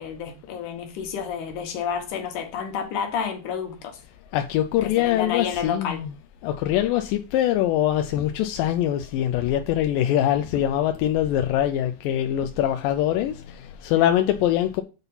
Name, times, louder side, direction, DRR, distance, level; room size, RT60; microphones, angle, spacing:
voice 1, 0.0-4.0 4.8-6.0, left 7 dB, 60° left, 2.5 m, -30 dB
voice 2, 4.3-6.1 6.4-14.8, left 12 dB, 80° left, 2.0 m, -23 dB
8.0 x 4.1 x 5.5 m
omnidirectional pair, 4.5 m